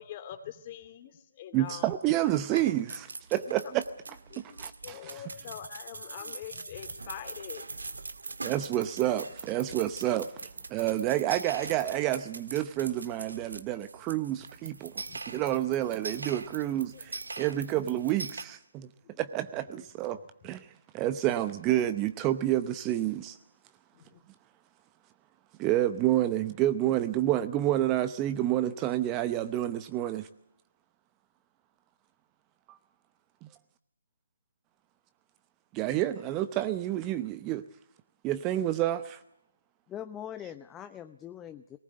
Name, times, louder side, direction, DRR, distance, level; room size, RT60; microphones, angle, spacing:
voice 1, 0.0-1.9 3.4-3.7 4.3-7.7 15.1-15.2 16.9-17.1 19.0-19.2 19.8-19.9 23.9-24.2, left 10 dB, 30° left, 10 dB, 2.4 m, -44 dB
voice 2, 1.5-3.8 4.4-5.2 8.4-18.9 19.2-20.7 20.9-23.4 25.6-30.3 32.7-32.8 33.4-33.5 35.7-37.6 38.2-39.2, right 13 dB, 20° right, 12 dB, 0.8 m, -29 dB
sound 1, 1.6-2.1 2.4-18.4, right 3 dB, 75° right, 1.6 m, -42 dB
voice 3, 39.9-41.8, left 10 dB, 15° left, 10 dB, 0.7 m, -42 dB
19.5 x 18.5 x 7.8 m, 0.81 s
figure-of-eight pair, 150°, 0 cm